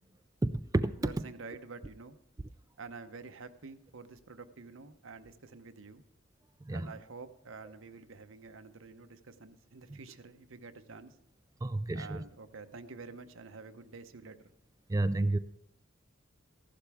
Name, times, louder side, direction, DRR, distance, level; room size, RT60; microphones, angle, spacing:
voice 1, 0.4-0.9 6.7-6.9 11.6-12.2 14.9-15.4, right 2 dB, 15° right, 0.3 m, -30 dB
voice 2, 1.0-2.2 2.8-6.0 6.7-11.1 11.9-14.5, right 4 dB, 85° right, 0.8 m, -48 dB
14.5 x 11.5 x 3.5 m
head